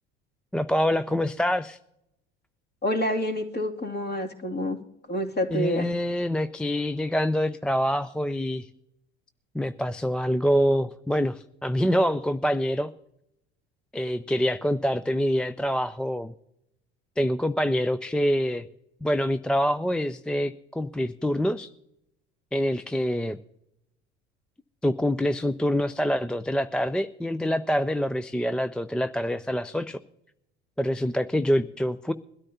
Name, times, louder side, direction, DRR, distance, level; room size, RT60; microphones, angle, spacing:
voice 1, 0.5-1.8 5.5-8.7 9.5-12.9 13.9-16.3 17.2-18.6 19.0-21.7 22.5-23.4 24.8-30.0 30.8-32.1, equal, 5° left, 14 dB, 0.4 m, -25 dB
voice 2, 2.8-4.8 5.1-5.9, equal, 30° left, 2 dB, 2.5 m, -28 dB
21.5 x 13.0 x 2.8 m, 0.79 s
hypercardioid pair, 70°, 33 cm